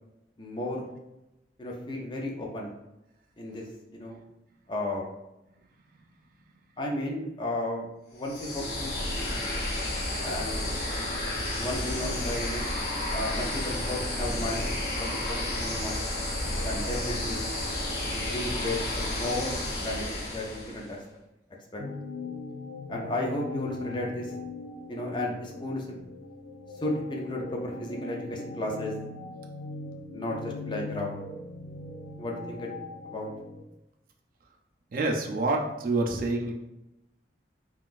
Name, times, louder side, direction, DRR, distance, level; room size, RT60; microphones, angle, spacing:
voice 1, 0.4-0.9 1.6-2.7 3.4-3.7 3.9-4.2 4.7-5.1 6.8-9.4 10.2-10.6 11.6-12.7 13.1-14.7 15.0-16.0 16.6-17.5 18.0-20.0 20.3-21.0 21.7-21.8 22.9-24.3 24.9-26.0 26.8-28.9 30.1-31.2 32.2-32.7 33.0-33.3, left 1 dB, 25° left, -1 dB, 0.5 m, -34 dB
sound 1, 8.2-20.9, left 1 dB, 60° left, 0.8 m, -31 dB
sound 2, 21.8-33.6, left 3 dB, 80° left, 0.4 m, -40 dB
voice 2, 34.9-36.5, right 2 dB, 50° right, 1 dB, 0.4 m, -27 dB
3.6 x 2.3 x 2.4 m, 0.91 s
head